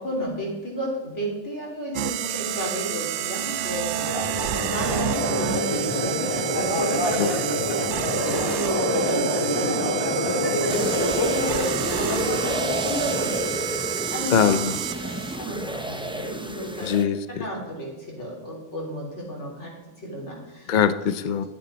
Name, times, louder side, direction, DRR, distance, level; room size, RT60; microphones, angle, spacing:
voice 1, 0.0-7.3 8.0-14.6 14.9-16.9 17.3-20.7, equal, 70° left, -3 dB, 3.6 m, -33 dB
sound 1, 1.9-15.4, right 12 dB, 80° right, 0.9 m, -30 dB
Crowd, 3.9-14.1, left 1 dB, 20° left, 1.3 m, -27 dB
sound 2, 10.7-17.0, right 1 dB, 5° right, 0.4 m, -31 dB
voice 2, 14.3-14.8 16.8-17.5 20.7-21.4, left 7 dB, 55° left, 12 dB, 0.5 m, -22 dB
11.0 x 9.6 x 4.2 m, 1.1 s
omnidirectional pair, 1.2 m